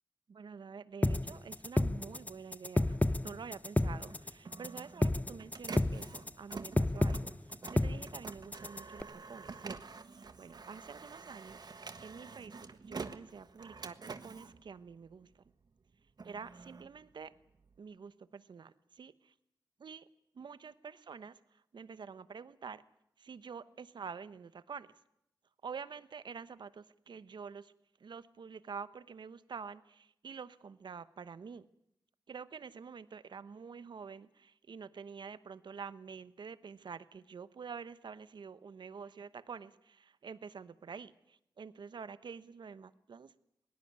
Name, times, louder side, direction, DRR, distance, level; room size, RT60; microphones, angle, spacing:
voice 1, 0.3-15.4 16.2-17.3 17.8-19.3 19.8-20.1 20.3-22.8 23.2-25.0 25.6-27.7 28.0-31.6 32.3-43.3, right 6 dB, 80° right, 14 dB, 1.0 m, -48 dB
sound 1, 1.0-9.0, left 1 dB, 20° left, 0.9 m, -31 dB
Printer, 4.1-15.5 15.9-17.8, right 4 dB, 60° right, 1.4 m, -48 dB
21.0 x 18.5 x 9.4 m, 0.78 s
cardioid pair, 55°, 8 cm